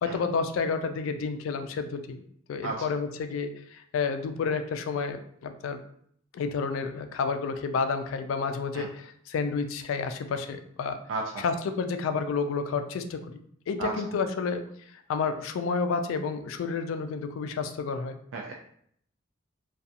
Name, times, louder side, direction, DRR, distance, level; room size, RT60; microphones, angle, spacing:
voice 1, 0.0-2.2 2.5-5.8 6.3-11.0 11.4-13.4 13.7-14.6 15.1-18.2, left 5 dB, 90° left, 9 dB, 0.3 m, -30 dB
voice 2, 11.1-11.4 13.8-13.9 18.3-18.5, right 3 dB, 80° right, -1 dB, 0.3 m, -33 dB
2.4 x 2.2 x 2.7 m, 0.66 s
head